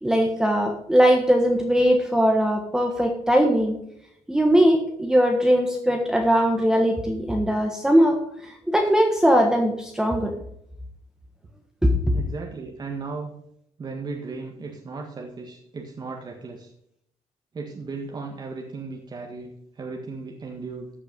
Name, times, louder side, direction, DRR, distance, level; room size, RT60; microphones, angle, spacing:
voice 1, 0.0-3.8 4.3-10.3 11.8-12.2, equal, 5° right, 2 dB, 1.4 m, -20 dB
voice 2, 12.1-13.4 13.8-16.7 17.5-20.9, right 4 dB, 35° right, 1 dB, 1.7 m, -36 dB
14.0 x 6.7 x 5.3 m, 0.73 s
cardioid pair, 130°, 12 cm